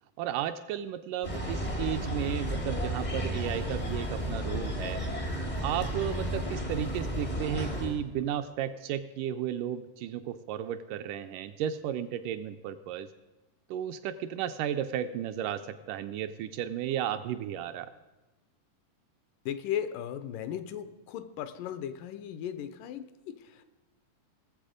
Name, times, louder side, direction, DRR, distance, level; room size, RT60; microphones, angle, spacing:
voice 1, 0.2-5.0 5.6-13.1 13.7-17.9, right 10 dB, 80° right, 8 dB, 2.0 m, -34 dB
sound 1, 1.2-8.0, equal, 60° left, 0.4 m, -33 dB
voice 2, 19.5-23.6, left 9 dB, 80° left, 11 dB, 2.2 m, -36 dB
19.5 x 7.5 x 5.0 m, 1.1 s
omnidirectional pair, 4.0 m